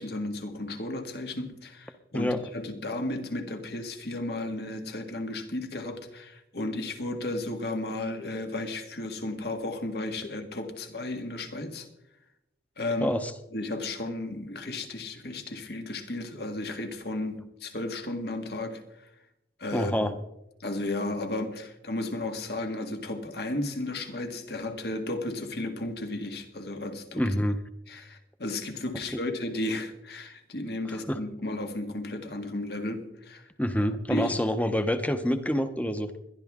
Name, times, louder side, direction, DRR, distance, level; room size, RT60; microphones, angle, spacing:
voice 1, 0.0-11.9 12.8-13.2 13.5-19.1 19.6-20.0 20.6-27.2 27.9-33.5 34.1-34.3, left 2 dB, 65° left, 1.8 m, -34 dB
voice 2, 19.7-20.1 27.1-27.6 29.1-29.2 30.9-31.2 33.6-36.1, equal, 10° left, 0.9 m, -27 dB
21.0 x 12.0 x 3.7 m
head